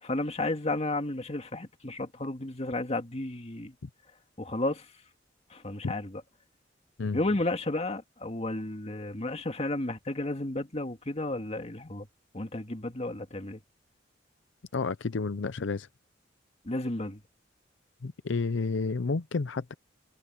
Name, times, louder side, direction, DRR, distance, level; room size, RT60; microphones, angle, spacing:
voice 1, 0.0-3.7 4.4-4.9 5.5-6.2 7.1-12.1 12.3-13.6 16.7-17.2, left 2 dB, 35° left, 2.0 m, -32 dB
voice 2, 14.7-15.9 18.0-19.7, left 4 dB, 80° left, 0.6 m, -30 dB
head